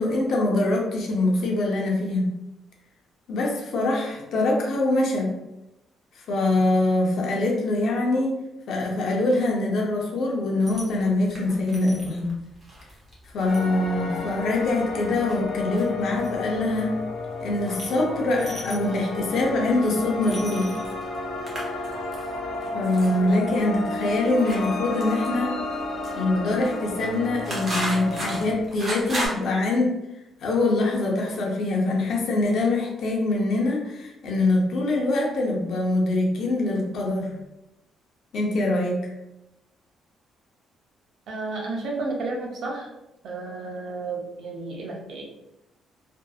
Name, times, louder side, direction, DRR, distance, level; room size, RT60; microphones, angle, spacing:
voice 1, 0.0-2.3 3.3-5.3 6.2-8.4 8.7-12.3 13.3-16.9 17.4-20.7 22.7-25.6 26.1-29.9 30.4-37.3 38.3-39.0, left 2 dB, 55° left, -1 dB, 0.6 m, -24 dB
sound 1, 10.7-29.3, right 1 dB, 25° right, 0.7 m, -37 dB
sound 2, 13.4-28.5, left 2 dB, 85° left, 0.8 m, -32 dB
voice 2, 41.3-42.9 43.2-45.2, right 3 dB, 60° right, -1 dB, 0.5 m, -32 dB
2.6 x 2.5 x 2.3 m, 0.92 s
cardioid pair, 180°, 0 cm